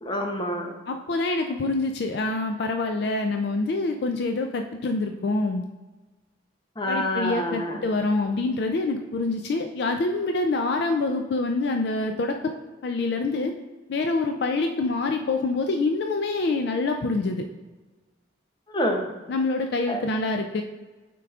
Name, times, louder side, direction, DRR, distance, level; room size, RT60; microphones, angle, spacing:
voice 1, 0.0-0.7 6.8-7.8 18.7-19.1 19.9-20.0, equal, 25° left, 3 dB, 0.7 m, -27 dB
voice 2, 0.9-5.6 6.9-12.5 12.8-13.5 13.9-17.4 19.3-20.6, left 3 dB, 60° left, 5 dB, 0.3 m, -26 dB
8.5 x 4.6 x 2.4 m, 1.3 s
head